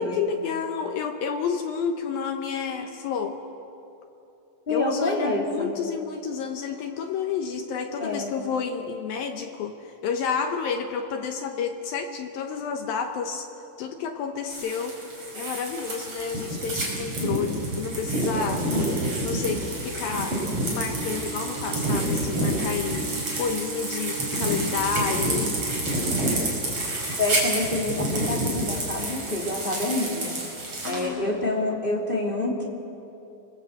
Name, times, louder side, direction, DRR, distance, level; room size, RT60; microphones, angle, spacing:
voice 1, 0.0-3.4 4.7-13.5 13.8-15.0 15.3-18.7 19.2-20.4 20.7-25.6 30.8-31.3, left 6 dB, 80° left, 4 dB, 2.1 m, -30 dB
voice 2, 4.7-5.7 8.0-8.3 27.2-30.3 30.8-32.6, left 2 dB, 15° left, -2 dB, 1.7 m, -27 dB
sound 1, 14.5-31.1, right 1 dB, 30° right, 5.9 m, -28 dB
sound 2, 20.6-26.0, right 8 dB, 85° right, 4.4 m, -40 dB
28.0 x 20.0 x 8.0 m, 2.8 s
omnidirectional pair, 5.6 m